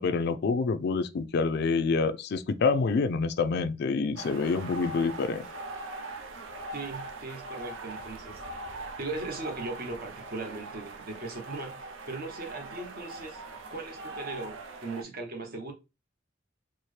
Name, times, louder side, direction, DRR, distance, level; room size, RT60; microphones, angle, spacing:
voice 1, 0.0-5.5, left 4 dB, 60° left, 0.4 m, -27 dB
sound 1, 4.2-15.0, right 2 dB, 80° right, 0.6 m, -41 dB
voice 2, 6.7-8.4 9.0-13.4 13.7-15.7, right 2 dB, 50° right, 0.9 m, -38 dB
4.2 x 2.1 x 3.2 m
head